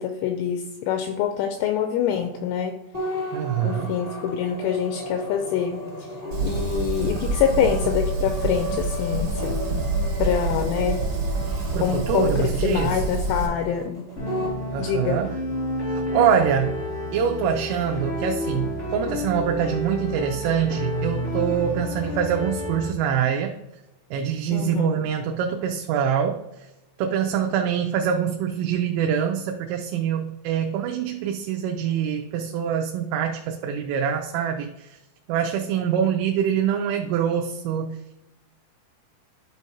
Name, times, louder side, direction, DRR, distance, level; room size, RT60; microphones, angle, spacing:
voice 1, 0.0-2.8 3.6-6.1 6.4-9.5 10.2-11.0 11.8-14.1 14.8-15.2 24.5-25.1, left 8 dB, 90° left, 5 dB, 2.7 m, -25 dB
sound 1, 2.9-14.6, left 1 dB, 30° right, 0.5 m, -34 dB
voice 2, 3.3-3.9 11.7-13.0 14.7-15.4 15.9-16.7 17.1-23.5 24.1-26.4 27.0-35.0 35.3-38.0, right 8 dB, 85° right, 3 dB, 2.9 m, -24 dB
Fire, 6.3-13.5, right 3 dB, 60° right, 1.8 m, -27 dB
sound 2, 14.2-22.9, left 1 dB, 60° left, 0.7 m, -30 dB
11.5 x 4.7 x 2.8 m, 1.0 s
omnidirectional pair, 5.9 m